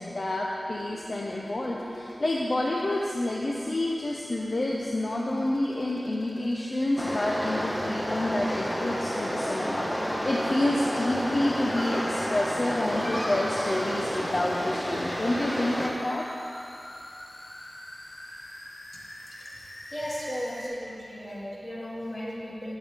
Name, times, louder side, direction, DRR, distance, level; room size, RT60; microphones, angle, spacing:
voice 1, 0.0-16.3, left 1 dB, 50° left, -2 dB, 0.8 m, -29 dB
sound 1, 0.7-20.7, left 1 dB, 70° left, 1.6 m, -46 dB
sound 2, 7.0-15.9, equal, 5° left, 1.2 m, -30 dB
voice 2, 19.9-22.7, equal, 30° left, -7 dB, 2.8 m, -35 dB
17.5 x 7.1 x 3.6 m, 2.7 s
wide cardioid pair, 85°, 0 cm